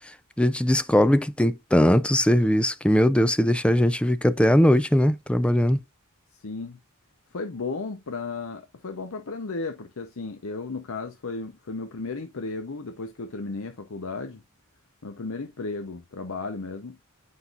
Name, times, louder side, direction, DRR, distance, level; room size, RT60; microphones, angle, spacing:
voice 1, 0.4-5.8, equal, 5° left, 0.4 m, -20 dB
voice 2, 6.3-6.8 7.3-14.4 15.0-17.0, left 3 dB, 70° left, 0.8 m, -34 dB
8.2 x 5.6 x 2.4 m
head